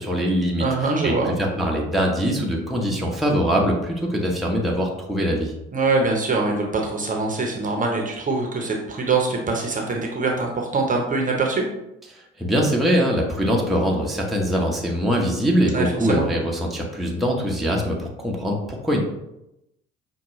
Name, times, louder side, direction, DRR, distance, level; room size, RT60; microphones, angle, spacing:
voice 1, 0.0-5.5 12.1-19.0, equal, ahead, -2 dB, 0.9 m, -23 dB
voice 2, 0.6-1.3 5.7-11.6 15.7-16.3, right 3 dB, 25° right, 1 dB, 0.9 m, -23 dB
5.8 x 2.3 x 3.1 m, 0.88 s
figure-of-eight pair, 55°, 29 cm